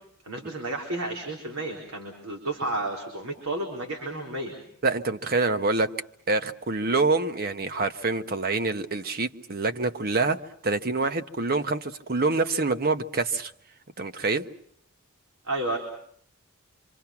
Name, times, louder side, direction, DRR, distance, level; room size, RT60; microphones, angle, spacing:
voice 1, 0.2-4.6 15.4-15.8, right 2 dB, 90° right, 1 dB, 4.0 m, -31 dB
voice 2, 4.8-5.9 6.3-10.4 10.6-13.5 14.0-14.4, right 3 dB, 45° right, 9 dB, 1.0 m, -26 dB
26.5 x 26.0 x 5.9 m, 0.65 s
head